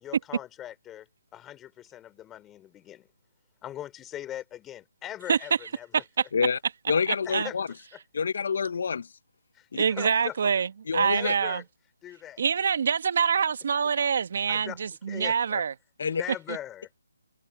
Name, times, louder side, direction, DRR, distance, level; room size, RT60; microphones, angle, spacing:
voice 1, 0.0-3.1 3.6-6.0 7.3-7.6 7.9-8.0 9.5-10.4 11.1-11.6 12.0-12.4 14.5-14.8 15.1-15.7 16.0-16.9, left 12 dB, 10° left, 3.4 m, -41 dB
voice 2, 5.9-6.2 7.1-7.5 9.7-10.7 10.9-11.6 12.4-15.7, right 6 dB, 55° right, 1.2 m, -25 dB
voice 3, 6.9-7.7 8.1-9.1 9.7-9.8 10.9-11.3 16.0-16.2, left 5 dB, 60° left, 1.1 m, -27 dB
hypercardioid pair, 155°, 0 cm